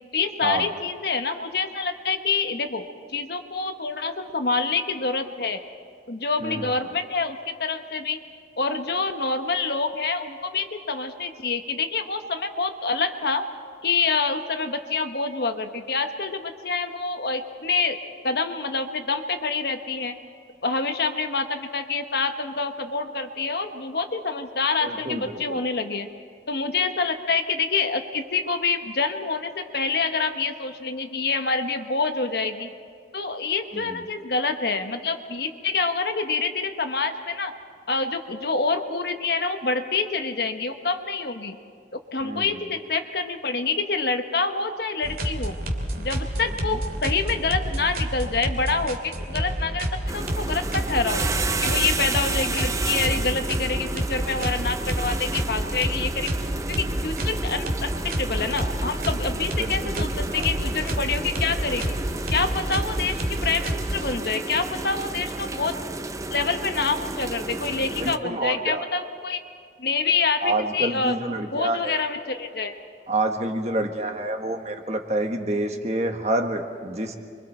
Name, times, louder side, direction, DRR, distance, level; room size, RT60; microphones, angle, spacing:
voice 1, 0.1-5.6 6.1-8.2 8.6-13.4 13.8-18.0 18.2-20.2 20.6-26.1 26.5-32.7 33.1-37.5 37.9-41.6 41.9-45.6 46.0-51.2 51.6-56.3 56.7-62.0 62.3-65.8 66.3-69.4 69.8-71.2 71.5-72.7, left 4 dB, 60° left, 6 dB, 1.2 m, -27 dB
voice 2, 24.8-25.6 33.7-34.0 42.2-42.6 46.7-46.8 59.6-60.4 68.0-68.8 70.4-72.0 73.1-77.2, right 1 dB, 35° right, 4 dB, 1.4 m, -28 dB
sound 1, 45.0-64.5, equal, 55° right, 2.3 m, -29 dB
sound 2, 50.1-68.2, right 3 dB, 15° right, 0.5 m, -32 dB
29.0 x 23.5 x 4.4 m, 2.2 s
head